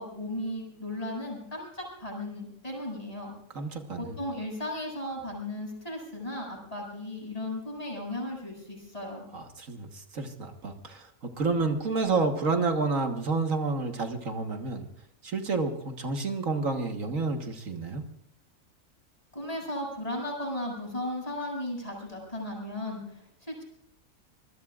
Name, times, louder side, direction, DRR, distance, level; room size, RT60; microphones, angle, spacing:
voice 1, 0.0-3.4 3.9-9.3 19.3-23.6, left 1 dB, 25° left, -1 dB, 7.6 m, -36 dB
voice 2, 3.6-4.2 9.3-14.8 15.2-18.0, right 3 dB, 75° right, 5 dB, 1.8 m, -30 dB
26.0 x 21.0 x 2.5 m, 0.76 s
omnidirectional pair, 1.4 m